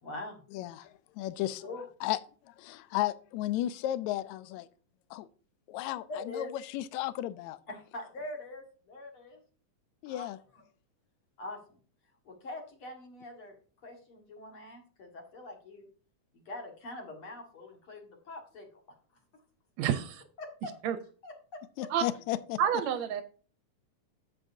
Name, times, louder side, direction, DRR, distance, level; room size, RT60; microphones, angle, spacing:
voice 1, 0.0-0.4 1.6-1.9 6.1-6.5 7.7-9.4 10.1-10.3 10.5-10.6 11.4-11.8 12.2-15.9 16.3-18.7 20.4-20.7 21.2-21.9, left 2 dB, 50° left, 2 dB, 2.4 m, -43 dB
voice 2, 0.5-1.6 2.0-2.2 2.5-4.7 5.1-5.3 5.7-7.6 10.0-10.4 21.8-22.6, left 14 dB, 80° left, 15 dB, 1.8 m, -34 dB
voice 3, 19.8-20.2 20.8-21.0 21.9-22.0 22.6-23.2, right 8 dB, 75° right, 11 dB, 1.6 m, -29 dB
8.7 x 7.7 x 2.6 m, 0.41 s
omnidirectional pair, 3.6 m